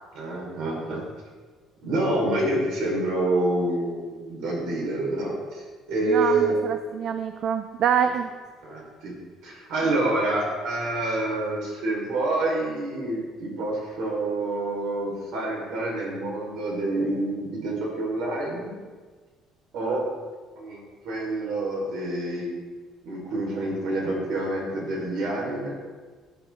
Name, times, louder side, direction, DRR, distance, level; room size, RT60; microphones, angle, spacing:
voice 1, 0.1-1.0 1.8-6.6 8.6-18.8 19.7-20.1 20.6-22.5 23.0-25.8, right 2 dB, 70° right, -2 dB, 4.8 m, -27 dB
voice 2, 6.0-8.3, right 8 dB, 50° right, 9 dB, 0.5 m, -26 dB
17.0 x 10.0 x 3.9 m, 1.4 s
cardioid pair, 165°, 0 cm